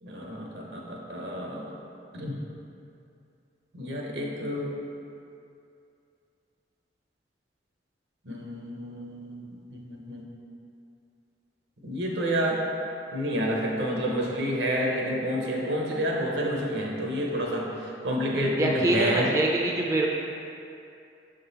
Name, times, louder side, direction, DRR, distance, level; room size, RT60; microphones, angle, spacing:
voice 1, 0.0-1.7 2.1-2.4 3.7-4.7 8.2-10.2 11.8-12.6 13.1-19.3, equal, 70° right, -1 dB, 0.9 m, -29 dB
voice 2, 18.6-20.1, right 2 dB, 20° right, -2 dB, 0.4 m, -25 dB
6.1 x 3.8 x 4.1 m, 2.6 s
head